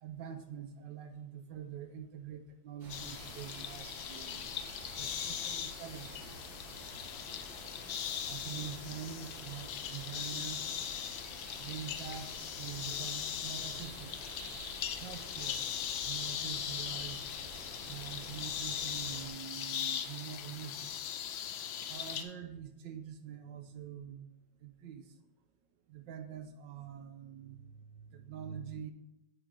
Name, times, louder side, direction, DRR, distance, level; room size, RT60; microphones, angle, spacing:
voice 1, 0.0-4.4 4.9-6.5 8.3-10.8 11.6-14.2 15.0-15.7 16.0-17.2 17.8-21.0 21.9-24.3 24.6-25.2 25.9-28.9, right 8 dB, 70° right, 8 dB, 1.2 m, -45 dB
sound 1, 2.8-19.3, right 2 dB, 50° right, 1.9 m, -50 dB
sound 2, 2.9-22.2, left 9 dB, 85° left, 1.4 m, -40 dB
6.6 x 3.9 x 6.1 m, 0.95 s
omnidirectional pair, 2.2 m